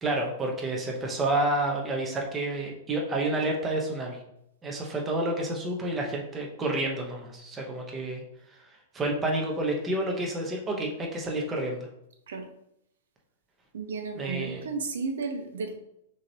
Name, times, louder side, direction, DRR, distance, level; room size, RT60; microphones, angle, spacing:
voice 1, 0.0-4.2 4.6-8.2 8.6-8.7 8.9-11.9 14.2-14.7, right 2 dB, 10° right, 0 dB, 0.8 m, -29 dB
voice 2, 13.7-15.7, right 4 dB, 85° right, 5 dB, 0.9 m, -33 dB
6.3 x 2.9 x 2.7 m, 0.77 s
supercardioid pair, 165°, 0 cm